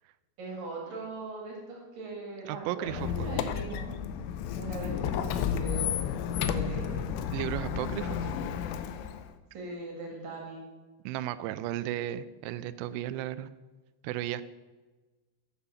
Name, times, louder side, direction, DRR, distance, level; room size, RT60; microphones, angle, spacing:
voice 1, 0.4-3.8 4.6-5.9 6.3-7.1 9.5-10.6, right 2 dB, 55° right, -1 dB, 3.3 m, -40 dB
voice 2, 2.5-3.3 7.3-8.3 11.1-13.5 14.0-14.4, right 13 dB, 85° right, 14 dB, 2.5 m, -34 dB
Squeak, 2.9-9.3, left 8 dB, 85° left, 2.8 m, -32 dB
8.7 x 8.3 x 5.6 m, 1.3 s
omnidirectional pair, 5.3 m